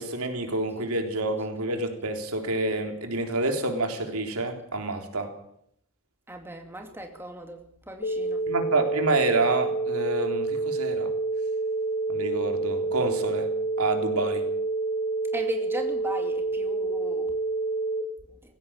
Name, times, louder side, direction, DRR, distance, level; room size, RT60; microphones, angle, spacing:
voice 1, 0.0-5.3 8.5-11.1 12.1-13.5 13.8-14.4, right 2 dB, 90° right, 4 dB, 3.7 m, -28 dB
voice 2, 6.3-8.4 15.3-17.3, right 1 dB, 10° right, 3 dB, 2.5 m, -37 dB
sound 1, 8.0-18.0, right 3 dB, 45° left, 1.9 m, -28 dB
18.5 x 16.5 x 9.0 m, 0.71 s
head